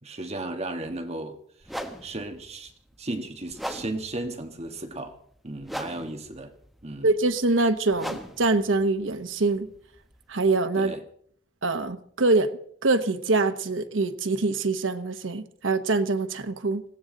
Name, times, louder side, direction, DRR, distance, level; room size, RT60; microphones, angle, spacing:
voice 1, 0.0-1.4 2.0-2.7 3.0-5.1 5.4-6.5 6.8-7.1 10.8-11.0, right 2 dB, 35° right, 1.5 m, -34 dB
sound 1, 0.9-1.0 1.6-10.5, equal, ahead, 1.3 m, -40 dB
voice 2, 7.0-9.7 10.3-10.9 11.6-12.5 12.8-16.8, right 3 dB, 90° right, 1.0 m, -24 dB
20.5 x 15.5 x 3.9 m
head